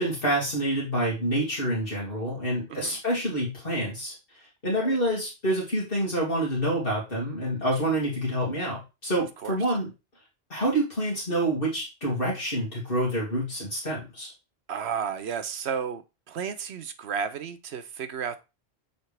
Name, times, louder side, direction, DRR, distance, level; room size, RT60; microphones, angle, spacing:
voice 1, 0.0-4.1 4.6-9.9 10.5-14.3, right 1 dB, 60° left, -5 dB, 2.4 m, -27 dB
voice 2, 14.7-16.0 16.3-18.4, right 7 dB, 80° right, 10 dB, 1.1 m, -32 dB
7.0 x 4.2 x 3.3 m, 0.27 s
omnidirectional pair, 1.1 m